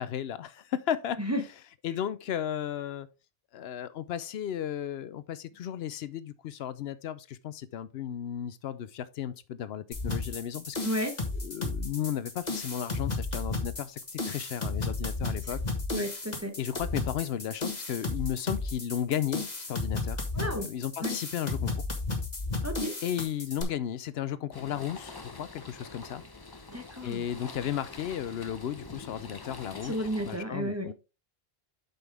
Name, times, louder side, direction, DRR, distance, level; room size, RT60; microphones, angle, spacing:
voice 1, 0.0-1.2 1.8-3.1 3.5-10.8 11.4-15.6 16.6-21.7 23.0-26.2 27.0-29.9 30.2-30.9, left 10 dB, 80° left, 0.8 m, -34 dB
sound 1, 9.9-23.6, left 3 dB, 45° left, 1.6 m, -33 dB
voice 2, 10.8-11.1 15.9-16.5 20.3-20.7 21.0-21.1 22.6-22.9 26.7-27.2 29.8-30.9, equal, 15° right, 1.0 m, -32 dB
sound 2, 24.5-30.4, left 3 dB, 25° left, 0.7 m, -45 dB
7.9 x 5.5 x 3.4 m
omnidirectional pair, 1.0 m